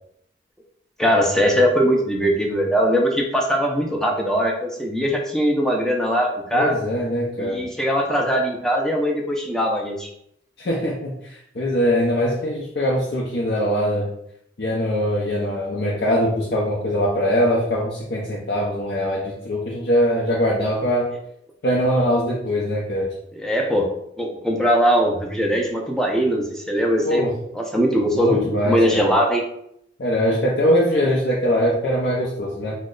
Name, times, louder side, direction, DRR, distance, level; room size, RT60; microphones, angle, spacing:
voice 1, 1.0-6.8 7.4-10.1 23.3-23.9 24.2-27.2 27.5-29.4, equal, 5° left, 0 dB, 0.5 m, -21 dB
voice 2, 6.5-7.7 10.6-14.1 14.6-21.1 21.6-23.1 27.0-27.3 28.1-29.1 30.0-32.7, equal, 55° left, -4 dB, 0.5 m, -22 dB
3.0 x 2.1 x 3.7 m, 0.74 s
head